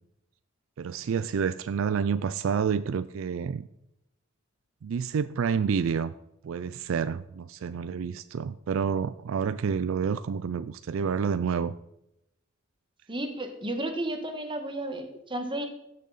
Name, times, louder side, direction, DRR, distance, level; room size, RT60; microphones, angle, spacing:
voice 1, 0.8-3.7 4.8-6.1 6.4-11.7, right 6 dB, 70° right, 14 dB, 0.4 m, -29 dB
voice 2, 13.1-15.7, right 1 dB, 25° right, 6 dB, 1.4 m, -33 dB
15.0 x 6.6 x 4.0 m, 0.83 s
head